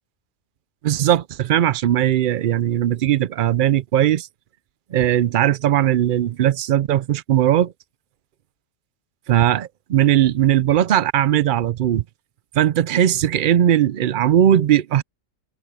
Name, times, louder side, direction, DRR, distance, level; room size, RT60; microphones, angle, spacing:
voice 1, 0.8-4.3 4.9-7.7 9.3-12.0 12.5-15.0, right 11 dB, 65° right, 0.5 m, -18 dB
omnidirectional pair, 1.4 m